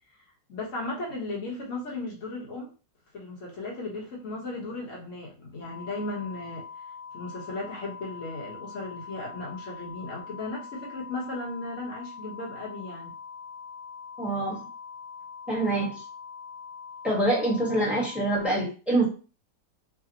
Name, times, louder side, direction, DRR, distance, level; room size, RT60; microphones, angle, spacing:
voice 1, 0.5-2.7 3.1-6.6 7.1-13.1, left 2 dB, 45° left, -3 dB, 1.6 m, -36 dB
sound 1, 5.6-18.5, left 6 dB, 80° left, 2.0 m, -43 dB
voice 2, 14.2-14.6 15.5-16.0 17.0-19.0, right 2 dB, ahead, -5 dB, 1.3 m, -25 dB
5.0 x 2.4 x 2.9 m, 0.35 s
omnidirectional pair, 1.9 m